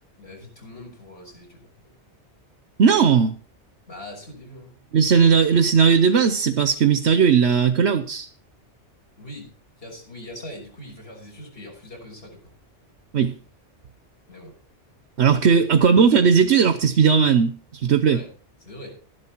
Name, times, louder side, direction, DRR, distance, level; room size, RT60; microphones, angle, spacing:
voice 1, 0.2-1.7 3.9-4.8 9.2-12.5 14.3-14.5 15.3-15.7 18.0-18.3 18.6-19.0, left 1 dB, 55° left, 6.4 m, -42 dB
voice 2, 2.8-3.3 4.9-8.3 13.1-13.3 15.2-18.2, right 6 dB, 70° right, 1.2 m, -17 dB
14.0 x 11.0 x 4.5 m
omnidirectional pair, 1.2 m